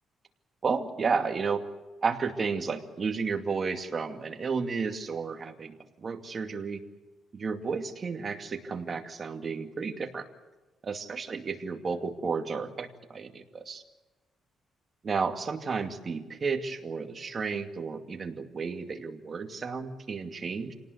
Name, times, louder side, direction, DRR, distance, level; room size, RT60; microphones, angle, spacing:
voice 1, 0.6-1.6 2.0-6.8 7.3-10.2 10.8-13.8 15.0-20.7, right 5 dB, 35° right, 5 dB, 2.4 m, -32 dB
27.5 x 18.5 x 8.1 m, 1.2 s
cardioid pair, 120°, 0 cm